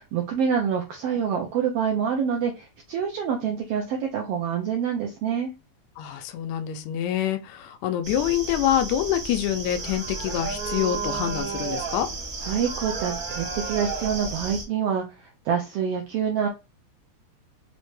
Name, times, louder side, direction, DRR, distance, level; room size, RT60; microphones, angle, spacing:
voice 1, 0.0-5.5 12.4-16.5, right 7 dB, 85° right, 1.3 m, -26 dB
voice 2, 6.0-12.1, left 11 dB, 85° left, 1.9 m, -26 dB
sound 1, 8.0-14.6, right 4 dB, 65° right, 0.8 m, -32 dB
5.1 x 2.1 x 3.1 m
omnidirectional pair, 3.3 m